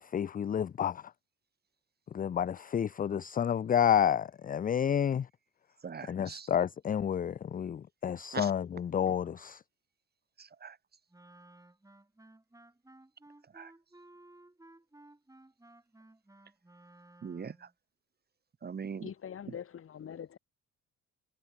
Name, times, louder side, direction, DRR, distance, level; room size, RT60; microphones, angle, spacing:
voice 1, 0.0-1.0 2.1-5.3 6.1-9.6, left 9 dB, 30° left, 0.4 m, -30 dB
voice 2, 5.8-6.5 8.3-8.5 10.4-10.7 13.5-13.7 17.2-17.5 18.6-19.1, right 6 dB, 35° right, 1.0 m, -41 dB
Wind instrument woodwind instrument, 11.1-17.7, right 2 dB, 10° right, 4.7 m, -57 dB
voice 3, 19.0-20.4, left 8 dB, 45° left, 1.2 m, -43 dB
cardioid pair, 90°, 30 cm